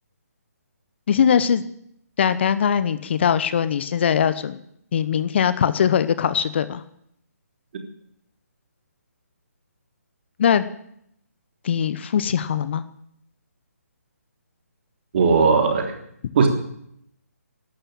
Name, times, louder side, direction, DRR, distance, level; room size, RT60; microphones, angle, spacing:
voice 1, 1.1-1.7 2.2-4.6 4.9-6.8 10.4-10.6 11.6-12.8, left 8 dB, 45° left, 14 dB, 1.0 m, -21 dB
voice 2, 15.1-16.0 16.3-16.5, right 5 dB, 40° right, 4 dB, 3.4 m, -17 dB
13.5 x 12.0 x 8.7 m, 0.72 s
figure-of-eight pair, 145°, 9 cm